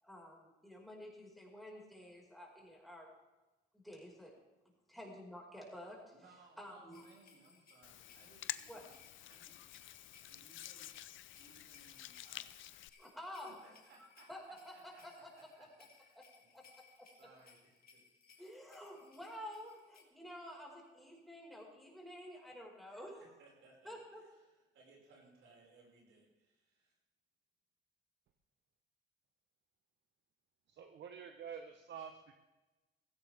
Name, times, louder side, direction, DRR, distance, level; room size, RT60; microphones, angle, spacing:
voice 1, 0.0-3.1 3.7-4.4 4.9-6.1 6.6-7.0 8.7-8.8 13.0-13.5 14.0-14.4 14.6-15.3 16.2-16.3 16.5-16.7 17.0-17.1 18.4-23.3 23.8-24.2, equal, ahead, -2 dB, 5.4 m, -50 dB
voice 2, 6.1-9.0 9.2-9.6 10.2-10.9 11.4-12.9 13.6-14.3 14.7-16.2 17.2-18.0 18.3-18.7 22.9-26.9, right 3 dB, 80° right, -2 dB, 5.7 m, -65 dB
sound 1, 6.9-20.0, left 5 dB, 50° left, 2.4 m, -65 dB
Hands, 7.8-12.9, left 14 dB, 80° left, 0.6 m, -49 dB
voice 3, 30.7-32.3, right 7 dB, 65° right, 6 dB, 1.1 m, -48 dB
16.5 x 16.0 x 3.6 m, 1.1 s
cardioid pair, 90°, 20 cm